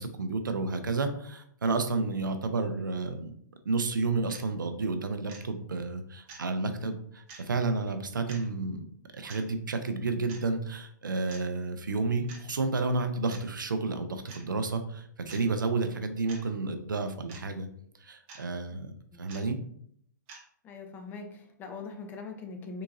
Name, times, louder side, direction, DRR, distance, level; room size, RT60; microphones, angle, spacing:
voice 1, 0.0-3.4 3.6-8.8 9.1-17.7 18.0-19.6, right 3 dB, 75° right, 7 dB, 0.5 m, -31 dB
sound 1, 4.3-4.4 5.3-5.4 6.3-6.5 7.3-7.4 8.3-8.4 9.3-9.4 10.3-10.5 11.3-11.4 12.3-12.4 13.3-13.4 14.3-14.4 15.3-15.4 16.3-16.4 17.3-17.4 18.3-18.4 19.3-19.4 20.3-20.4, right 4 dB, 35° right, 0.8 m, -47 dB
voice 2, 20.6-22.8, left 4 dB, 20° left, 4 dB, 0.5 m, -42 dB
3.7 x 2.7 x 2.5 m, 0.67 s
figure-of-eight pair, 115°, 11 cm